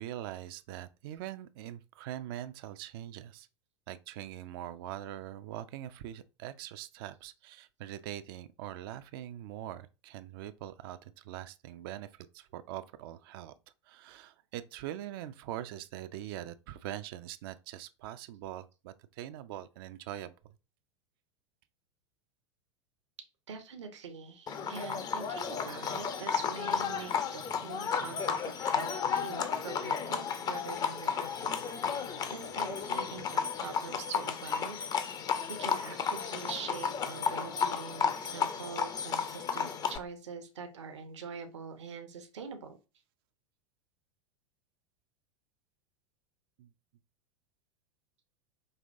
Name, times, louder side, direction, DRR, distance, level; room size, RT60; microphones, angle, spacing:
voice 1, 0.0-3.5 3.9-13.5 13.8-20.3 46.6-46.7, right 12 dB, 50° right, 0.4 m, -43 dB
voice 2, 23.5-42.8, right 5 dB, 65° right, 0.8 m, -44 dB
Livestock farm animals working animals, 24.5-40.0, left 6 dB, 25° left, 0.5 m, -33 dB
5.4 x 2.8 x 2.5 m
figure-of-eight pair, 85°, 16 cm